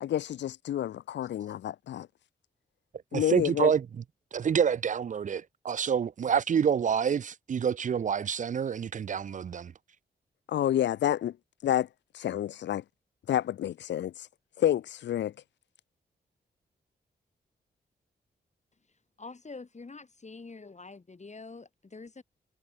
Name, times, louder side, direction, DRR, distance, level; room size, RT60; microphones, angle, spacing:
voice 1, 0.0-2.1 3.1-3.7 10.5-11.4 11.6-11.9 12.1-12.8 13.3-14.3 14.6-15.3, left 11 dB, 85° left, 0.7 m, -29 dB
voice 2, 3.1-3.9 4.3-9.7, right 7 dB, 45° right, 0.4 m, -27 dB
voice 3, 19.2-22.2, left 3 dB, 40° left, 7.4 m, -46 dB
cardioid pair, 55°, 18 cm